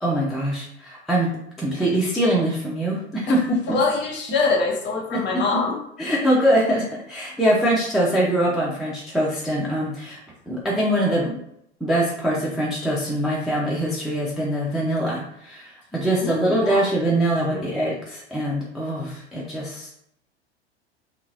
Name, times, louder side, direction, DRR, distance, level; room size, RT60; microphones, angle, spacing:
voice 1, 0.0-1.3 1.6-3.4 3.7-3.8 5.1-5.2 6.0-10.2 10.5-11.3 11.8-19.9, right 1 dB, ahead, -5 dB, 0.4 m, -23 dB
voice 2, 3.7-5.8 16.2-16.8 17.5-17.8, left 3 dB, 30° left, 0 dB, 0.8 m, -24 dB
2.8 x 2.4 x 2.5 m, 0.75 s
figure-of-eight pair, 85°, 34 cm